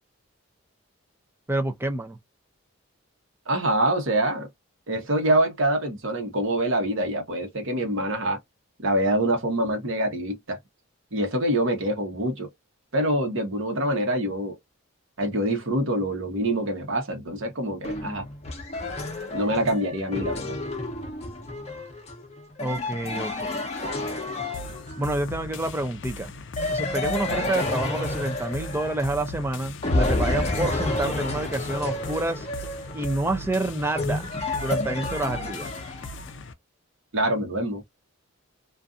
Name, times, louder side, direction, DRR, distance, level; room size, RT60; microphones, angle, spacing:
voice 1, 1.5-2.2 22.6-23.7 25.0-26.3 26.7-32.5 32.9-34.3 34.6-35.7, right 2 dB, 10° right, 0.4 m, -28 dB
voice 2, 3.5-4.5 4.9-8.4 8.8-10.6 11.1-12.5 12.9-14.6 15.2-18.2 19.3-20.5 37.1-37.8, right 1 dB, 60° right, 1.0 m, -25 dB
sound 1, 17.8-25.2 26.6-29.4 29.8-36.3, left 2 dB, 30° left, 0.7 m, -30 dB
sound 2, 24.5-36.5, left 2 dB, 55° left, 0.4 m, -39 dB
2.5 x 2.5 x 2.3 m
head